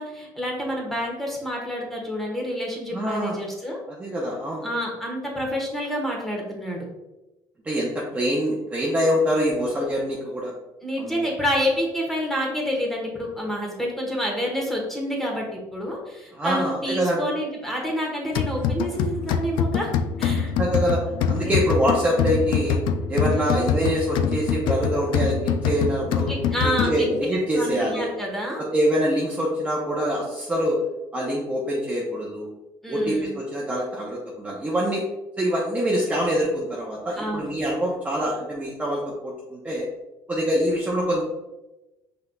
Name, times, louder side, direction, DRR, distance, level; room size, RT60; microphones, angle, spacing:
voice 1, 0.0-3.8 4.6-6.8 10.8-19.9 20.2-20.5 21.4-21.6 23.3-23.6 26.3-28.6 32.8-33.3 37.2-37.5, equal, 5° left, -2 dB, 1.3 m, -28 dB
voice 2, 2.9-3.4 3.9-4.7 7.6-10.5 11.0-11.2 16.3-17.3 20.6-22.8 23.1-26.3 26.8-28.1 28.6-30.8 31.1-32.5 32.9-35.0 35.4-39.9 40.3-41.2, equal, 15° right, -4 dB, 0.8 m, -25 dB
sound 1, 18.4-27.2, left 6 dB, 75° left, 0.3 m, -25 dB
5.6 x 3.9 x 2.3 m, 1.0 s
cardioid pair, 125°, 8 cm